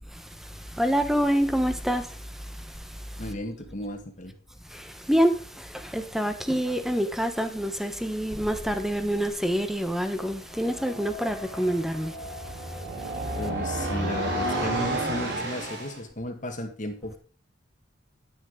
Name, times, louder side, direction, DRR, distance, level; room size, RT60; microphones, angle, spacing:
voice 1, 0.8-2.1 4.7-12.1, equal, ahead, 1.1 m, -26 dB
voice 2, 3.2-4.3 13.4-17.2, left 1 dB, 40° left, 1.7 m, -34 dB
sound 1, 10.5-16.0, right 1 dB, 60° right, 4.3 m, -31 dB
10.0 x 9.8 x 3.8 m
head